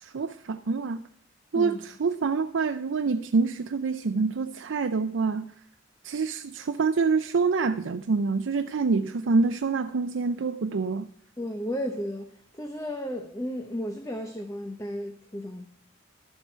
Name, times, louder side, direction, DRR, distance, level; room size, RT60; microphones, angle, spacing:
voice 1, 0.0-1.0 1.5-5.5 6.0-11.1, right 4 dB, 80° right, 0.5 m, -26 dB
voice 2, 1.5-1.8 11.4-15.7, equal, 15° left, 0.8 m, -34 dB
12.0 x 7.5 x 4.4 m
head